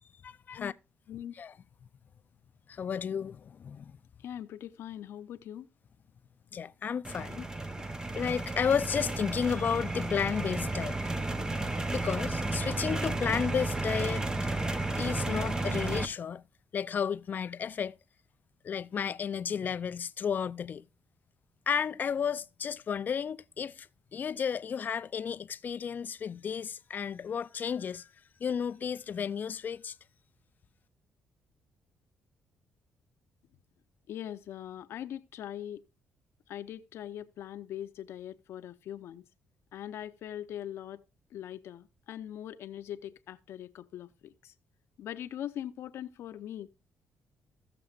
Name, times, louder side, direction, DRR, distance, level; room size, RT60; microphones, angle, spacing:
voice 1, 0.2-0.7 1.3-1.5 2.7-4.0 6.5-7.5 8.1-11.0 11.9-14.2 15.0-16.4 16.7-18.0 18.6-20.8 21.7-23.9 24.1-28.1 28.4-29.9, left 7 dB, 45° left, 0.4 m, -32 dB
voice 2, 4.2-5.7 34.1-35.8 36.5-39.2 39.7-41.0 41.3-44.5 45.0-46.7, left 11 dB, 75° left, 0.8 m, -41 dB
sound 1, 7.0-16.1, right 2 dB, 15° right, 0.8 m, -32 dB
16.5 x 6.9 x 2.4 m
cardioid pair, 105°, 4 cm